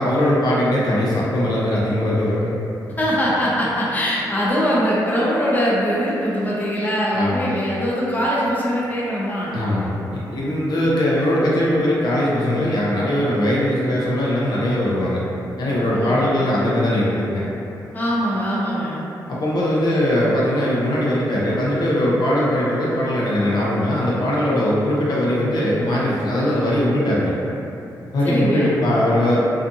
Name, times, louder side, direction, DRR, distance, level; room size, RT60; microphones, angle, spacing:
voice 1, 0.0-2.6 7.1-7.5 9.5-15.2 15.6-17.4 19.3-27.3 28.1-29.4, left 1 dB, 65° left, -6 dB, 0.5 m, -20 dB
voice 2, 3.0-9.6 15.9-16.3 17.9-19.0 28.2-28.7, equal, 25° left, -7 dB, 0.6 m, -22 dB
2.6 x 2.4 x 2.5 m, 2.8 s
cardioid pair, 95°, 8 cm